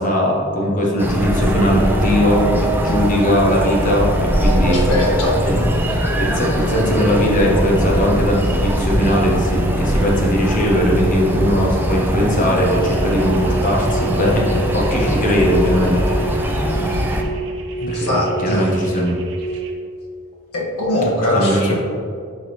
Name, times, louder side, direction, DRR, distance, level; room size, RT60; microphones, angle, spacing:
voice 1, 0.0-4.8 5.4-5.6 6.2-16.0 16.3-16.7 17.9-19.2 21.3-21.7, equal, 35° left, -2 dB, 1.2 m, -19 dB
sound 1, 1.0-17.2, equal, 10° right, 0.5 m, -21 dB
voice 2, 4.6-5.7 17.8-18.7 20.5-21.7, left 1 dB, 80° left, -4 dB, 1.7 m, -21 dB
sound 2, 12.5-19.7, right 3 dB, 60° right, 0.8 m, -29 dB
10.0 x 3.9 x 3.2 m, 2.3 s
head